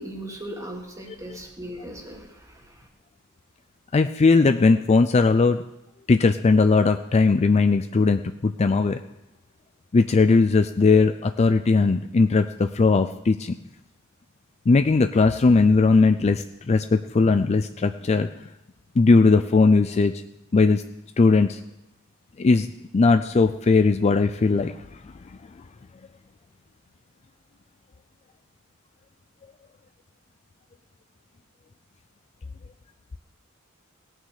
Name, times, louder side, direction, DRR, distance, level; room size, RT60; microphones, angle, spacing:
voice 1, 0.0-2.9, right 1 dB, 15° right, 2 dB, 1.9 m, -38 dB
voice 2, 3.9-5.6 6.1-9.0 9.9-13.6 14.7-18.3 19.0-20.1 20.5-20.8 21.2-21.6 22.4-22.7 22.9-24.8, left 4 dB, 30° left, 9 dB, 0.4 m, -19 dB
17.5 x 6.3 x 6.5 m, 0.87 s
head